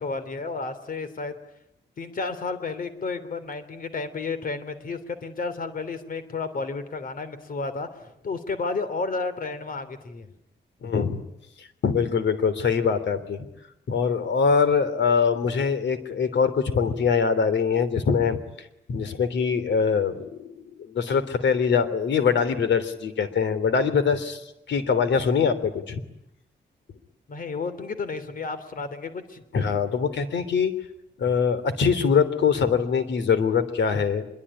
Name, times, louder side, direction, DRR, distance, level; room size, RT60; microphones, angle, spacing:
voice 1, 0.0-1.4 2.0-7.9 8.2-10.3 27.3-29.4, left 4 dB, 50° left, 11 dB, 3.2 m, -32 dB
voice 2, 10.8-11.2 11.6-13.4 13.9-18.4 18.9-24.4 24.7-26.0 29.5-30.7 31.2-34.2, left 6 dB, 85° left, 12 dB, 3.2 m, -23 dB
25.5 x 22.5 x 9.9 m, 0.81 s
wide cardioid pair, 160°, 18 cm